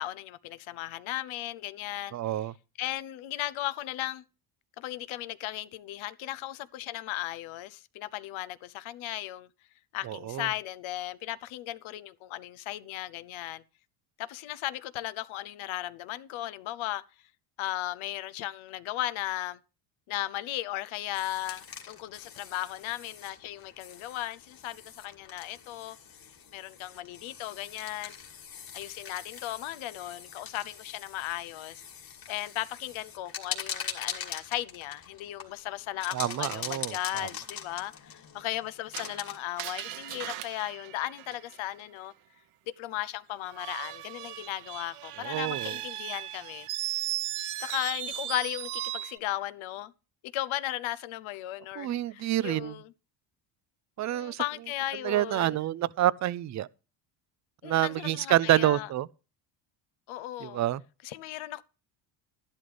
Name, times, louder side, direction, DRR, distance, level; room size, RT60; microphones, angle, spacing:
voice 1, 0.0-2.2 2.8-4.2 4.8-9.5 9.9-13.6 14.2-17.0 17.6-19.6 20.1-26.0 26.5-28.1 28.7-31.8 32.3-42.1 42.8-46.7 47.6-49.9 50.3-52.9 54.0-55.6 57.6-58.9 60.1-60.6 61.0-61.6, left 15 dB, 70° left, 0.8 m, -36 dB
voice 2, 2.1-2.5 10.0-10.5 36.1-37.3 45.2-45.8 51.8-52.8 54.0-54.4 55.0-56.7 57.6-59.1 60.4-60.8, right 13 dB, 35° right, 0.5 m, -28 dB
sound 1, 21.1-39.4, left 7 dB, 45° left, 2.6 m, -42 dB
Screech, 38.9-41.8 43.5-49.2, right 13 dB, 80° right, 1.3 m, -37 dB
12.0 x 11.5 x 3.4 m
cardioid pair, 115°, 50 cm